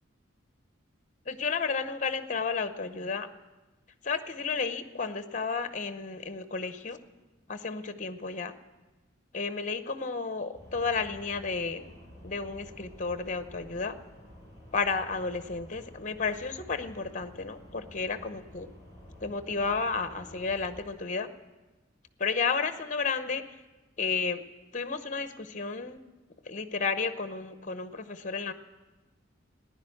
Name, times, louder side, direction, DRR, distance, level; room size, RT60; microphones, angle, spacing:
voice 1, 1.3-3.3 4.0-7.0 7.5-8.6 9.3-11.9 12.2-14.0 14.7-18.7 19.2-21.3 22.2-23.4 24.0-24.4 24.7-26.0 26.4-28.5, left 4 dB, 40° left, 11 dB, 0.7 m, -32 dB
sound 1, 10.5-20.8, equal, 15° left, 6.3 m, -50 dB
15.5 x 10.5 x 7.8 m, 1.2 s
head